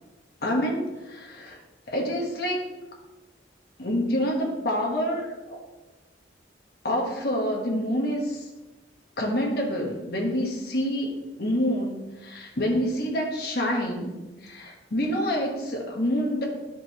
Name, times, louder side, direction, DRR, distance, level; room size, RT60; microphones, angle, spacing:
voice 1, 0.4-1.6 1.9-2.6 3.8-5.6 6.8-8.5 9.2-14.2 14.4-16.4, equal, 60° left, -1 dB, 1.3 m, -27 dB
11.0 x 5.4 x 3.0 m, 1.1 s
head